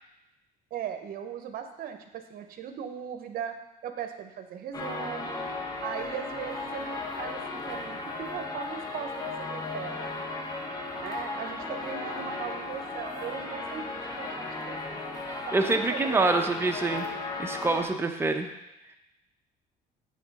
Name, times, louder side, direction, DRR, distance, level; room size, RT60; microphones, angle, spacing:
voice 1, 0.7-3.6 3.8-5.4 5.8-10.0 11.0-16.2, right 8 dB, 60° right, 7 dB, 0.8 m, -39 dB
sound 1, 4.7-17.9, left 3 dB, 20° left, 0.9 m, -36 dB
voice 2, 15.5-17.1 17.4-18.5, right 3 dB, 15° right, 4 dB, 0.6 m, -26 dB
8.5 x 3.8 x 4.1 m, 0.94 s
cardioid pair, 110°, 17 cm